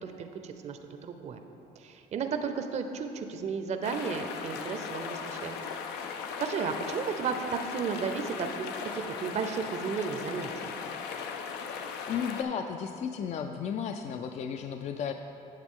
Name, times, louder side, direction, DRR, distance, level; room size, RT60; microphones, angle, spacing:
voice 1, 0.0-1.4 1.8-5.6 6.0-10.7, right 6 dB, 40° right, 7 dB, 0.5 m, -34 dB
sound 1, 3.8-12.4, left 6 dB, 85° left, 0.6 m, -38 dB
voice 2, 12.1-15.1, left 7 dB, 45° left, 6 dB, 0.4 m, -34 dB
8.8 x 7.3 x 3.7 m, 2.8 s
cardioid pair, 110°, 17 cm